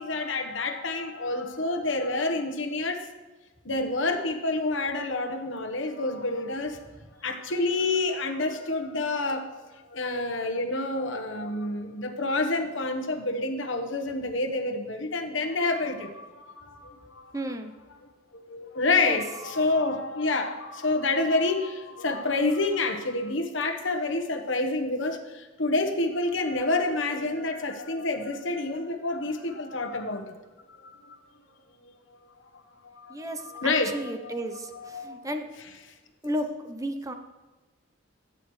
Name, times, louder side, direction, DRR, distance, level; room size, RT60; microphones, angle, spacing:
voice 1, 0.0-3.0 3.6-6.8 7.2-9.5 9.9-17.3 18.3-30.4 31.0-31.2 32.8-33.1 33.4-34.3 34.7-35.2, left 2 dB, 65° left, 5 dB, 1.2 m, -28 dB
voice 2, 17.3-17.8 18.9-19.2 33.1-35.5 36.2-37.1, equal, 15° right, 7 dB, 0.7 m, -33 dB
16.0 x 8.6 x 3.2 m, 1.3 s
head